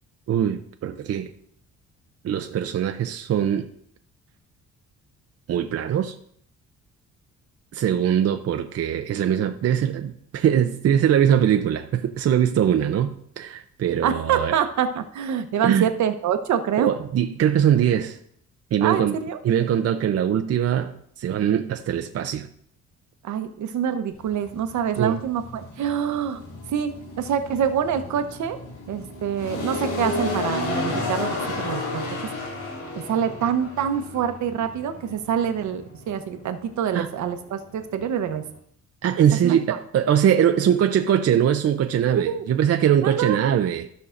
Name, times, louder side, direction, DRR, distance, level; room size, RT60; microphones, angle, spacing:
voice 1, 0.3-1.3 2.2-3.7 5.5-6.2 7.7-14.5 15.6-15.9 16.8-18.2 18.7-19.1 19.4-22.5 25.0-25.1 36.9-37.1 39.0-43.9, right 9 dB, 50° right, 0.6 m, -22 dB
voice 2, 14.0-16.9 18.8-19.4 23.2-26.4 26.7-28.6 28.9-32.0 32.9-38.4 39.4-39.6 42.1-42.4 43.0-43.4, right 8 dB, 70° right, 0.9 m, -26 dB
sound 1, 24.1-38.6, left 2 dB, 85° left, 2.9 m, -33 dB
15.0 x 5.6 x 2.6 m
cardioid pair, 90°, 30 cm